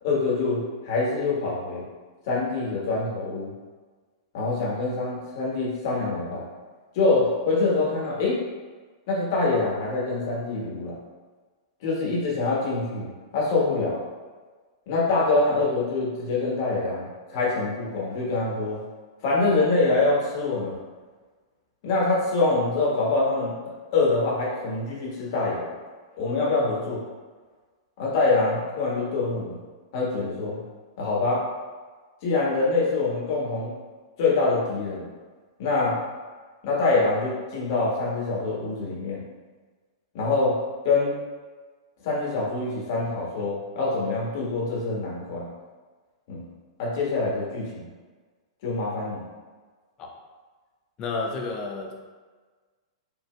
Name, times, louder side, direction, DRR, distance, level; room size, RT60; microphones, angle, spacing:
voice 1, 0.0-1.8 2.2-3.5 4.3-6.5 6.9-8.4 9.1-10.9 11.8-14.1 14.9-18.8 19.2-20.8 21.8-23.5 23.9-25.7 26.2-27.0 28.0-29.5 29.9-30.6 31.0-31.5 32.2-33.7 34.2-35.1 35.6-36.0 36.6-39.2 40.1-40.6 40.8-41.1 42.0-45.5 46.3-46.5 46.8-47.8 48.6-49.2, left 3 dB, 50° left, -5 dB, 1.3 m, -25 dB
voice 2, 51.0-51.9, left 3 dB, 30° left, 0 dB, 0.6 m, -31 dB
4.9 x 2.6 x 2.2 m, 1.4 s
figure-of-eight pair, 105°, 3 cm